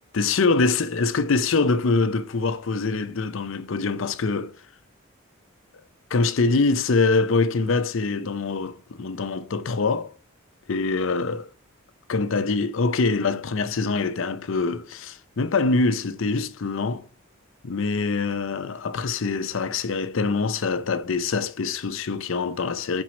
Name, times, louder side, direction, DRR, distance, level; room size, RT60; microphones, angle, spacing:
voice 1, 0.1-4.5 6.1-10.1 10.7-11.5 12.1-17.0 17.6-23.0, left 4 dB, 70° left, 0.6 m, -24 dB
5.2 x 4.5 x 5.8 m
head